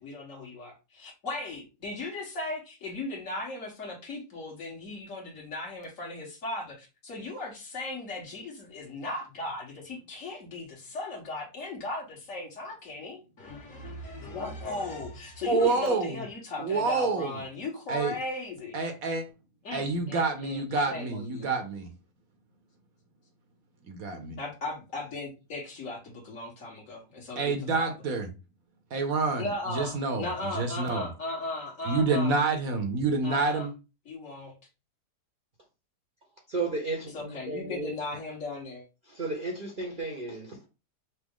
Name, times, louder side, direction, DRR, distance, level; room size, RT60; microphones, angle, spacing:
voice 1, 0.0-18.8 19.6-21.5 24.4-27.9 29.4-32.4 33.2-33.7 34.0-34.5 37.1-38.9, left 2 dB, 50° left, 1.6 m, -37 dB
voice 2, 15.4-16.2 16.6-17.3 17.9-18.2 18.7-19.2 19.7-21.9 23.8-24.4 27.4-28.3 28.9-31.1 31.9-33.7, right 3 dB, 65° right, 1.1 m, -28 dB
voice 3, 36.5-38.0 39.1-40.7, right 3 dB, 40° right, 0.8 m, -34 dB
5.8 x 2.0 x 3.6 m
omnidirectional pair, 1.8 m